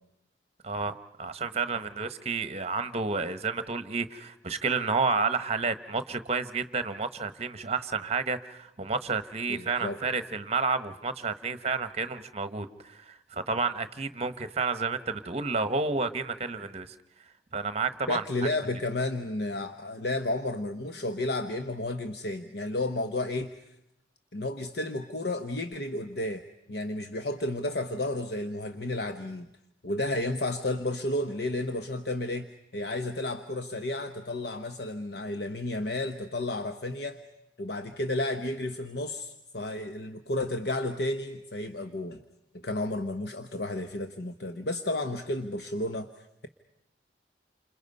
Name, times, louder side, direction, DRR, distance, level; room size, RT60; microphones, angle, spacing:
voice 1, 0.6-16.9 17.5-18.2, right 4 dB, 35° right, 12 dB, 1.1 m, -30 dB
voice 2, 9.5-10.0 18.1-23.5 24.3-26.4 26.7-29.5 29.8-37.2 37.6-42.2 42.6-46.5, left 2 dB, 60° left, 8 dB, 0.9 m, -32 dB
29.0 x 26.5 x 5.4 m, 0.83 s
head